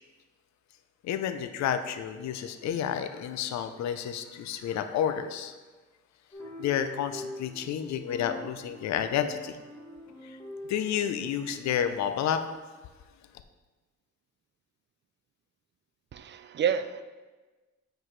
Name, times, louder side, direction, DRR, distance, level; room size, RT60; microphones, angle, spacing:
voice 1, 1.0-5.5 6.6-9.6 10.2-10.4 10.7-12.4, left 9 dB, 65° left, 9 dB, 0.5 m, -30 dB
sound 1, 6.3-11.6, left 1 dB, 10° left, 1.8 m, -44 dB
voice 2, 16.1-17.0, right 8 dB, 40° right, 11 dB, 0.4 m, -29 dB
7.9 x 4.6 x 3.2 m, 1.3 s
cardioid pair, 90°, 30 cm